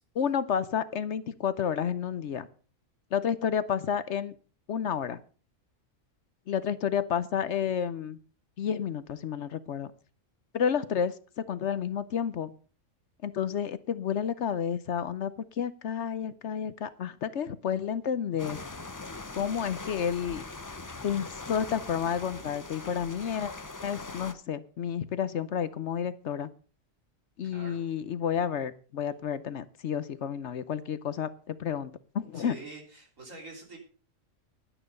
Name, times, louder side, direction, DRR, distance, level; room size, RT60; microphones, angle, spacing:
voice 1, 0.1-2.5 3.1-4.3 4.7-5.2 6.5-8.2 8.6-9.9 10.5-11.1 11.5-12.5 13.2-15.3 15.6-18.6 19.4-20.4 21.0-23.5 23.8-26.5 27.4-32.6, left 8 dB, 60° left, 14 dB, 1.0 m, -30 dB
sound 1, 18.4-24.3, left 3 dB, 20° left, 0.5 m, -41 dB
voice 2, 27.4-27.8 32.3-33.8, right 3 dB, 70° right, 1 dB, 3.9 m, -45 dB
11.0 x 10.0 x 5.4 m, 0.38 s
omnidirectional pair, 1.4 m